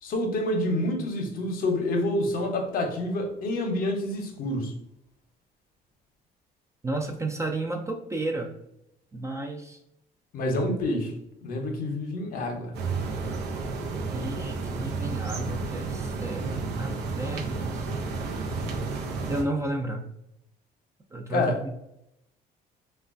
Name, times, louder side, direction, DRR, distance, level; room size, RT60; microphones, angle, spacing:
voice 1, 0.0-4.7 10.3-12.7 21.3-21.6, left 1 dB, 60° left, 3 dB, 0.7 m, -28 dB
voice 2, 6.8-8.5 9.1-9.8 14.1-17.9 19.3-20.1 21.1-21.7, right 2 dB, 15° right, 3 dB, 0.4 m, -32 dB
sound 1, 12.7-19.4, right 4 dB, 90° right, 0.6 m, -31 dB
3.1 x 2.2 x 2.5 m, 0.81 s
cardioid pair, 110°, 17 cm